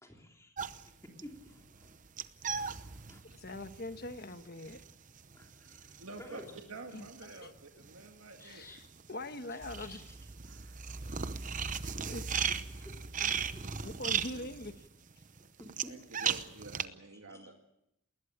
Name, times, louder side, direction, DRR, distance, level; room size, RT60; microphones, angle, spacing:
voice 1, 0.0-1.9 2.6-3.2 5.3-6.5 8.4-8.8 9.5-10.1 10.5-10.8 11.3-11.6 12.0-12.5 13.2-13.3 13.5-13.6 15.6-15.9 16.2-16.3 17.3-17.5, left 1 dB, 15° left, 3.4 m, -54 dB
sound 1, 0.6-8.1 8.3-16.8, right 6 dB, 35° right, 0.8 m, -37 dB
voice 2, 3.2-4.8 6.9-7.5 8.4-8.8 9.1-10.0 12.0-12.2 13.8-14.7, left 2 dB, 45° left, 1.2 m, -42 dB
voice 3, 6.0-6.4 6.7-8.7 13.6-14.5 15.6-17.5, right 2 dB, 80° right, 2.1 m, -49 dB
20.0 x 20.0 x 8.7 m
head